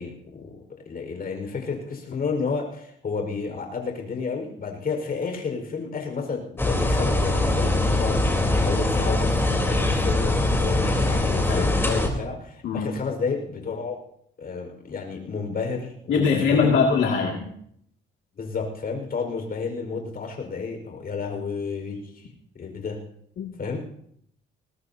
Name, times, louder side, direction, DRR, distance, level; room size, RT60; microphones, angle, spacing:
voice 1, 0.0-14.0 14.4-16.9 18.3-22.3 22.5-23.0 23.6-23.8, left 5 dB, 50° left, 3 dB, 5.1 m, -31 dB
sound 1, 6.6-12.1, left 2 dB, 10° left, 3.9 m, -22 dB
voice 2, 16.1-17.5 23.4-23.5, left 5 dB, 75° left, -1 dB, 2.5 m, -22 dB
21.5 x 19.5 x 2.9 m, 0.71 s
cardioid pair, 90°, 20 cm